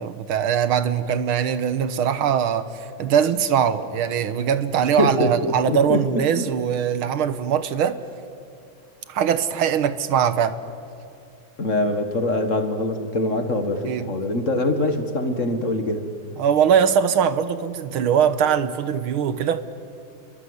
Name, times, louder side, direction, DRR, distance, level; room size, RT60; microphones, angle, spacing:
voice 1, 0.0-8.0 9.1-10.6 13.9-14.1 16.4-19.6, right 8 dB, 80° right, 12 dB, 1.9 m, -21 dB
voice 2, 5.0-6.4 11.6-16.1, left 1 dB, 40° left, 7 dB, 1.8 m, -24 dB
29.5 x 22.5 x 8.1 m, 2.4 s
omnidirectional pair, 2.3 m